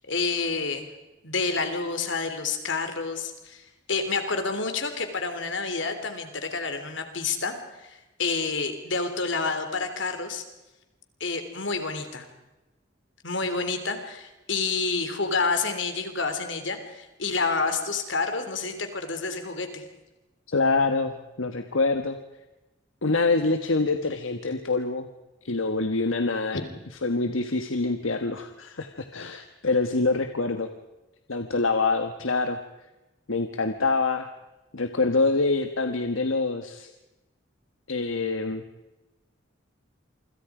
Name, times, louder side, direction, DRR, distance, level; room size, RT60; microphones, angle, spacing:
voice 1, 0.1-0.8 1.2-10.4 11.2-12.3 13.2-19.8 26.5-26.6, left 4 dB, 70° left, 7 dB, 3.4 m, -29 dB
voice 2, 20.5-22.2 23.0-25.1 25.4-26.6 27.0-30.7 31.3-32.6 33.3-34.3 34.7-36.9 37.9-38.6, left 3 dB, 90° left, 7 dB, 1.4 m, -25 dB
27.5 x 25.5 x 5.0 m, 1.0 s
head